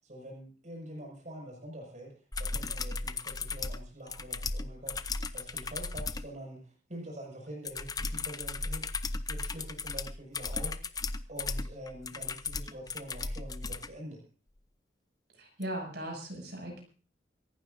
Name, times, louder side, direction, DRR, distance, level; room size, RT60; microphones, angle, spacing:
voice 1, 0.0-8.8 9.2-11.0 11.3-14.2, right 1 dB, 45° right, -1 dB, 6.4 m, -45 dB
sound 1, 2.3-6.3 7.6-13.9 15.6-15.7, left 3 dB, 20° left, 0.7 m, -36 dB
voice 2, 15.4-16.8, right 1 dB, 65° right, 1 dB, 7.5 m, -38 dB
26.5 x 15.0 x 2.7 m, 0.37 s
head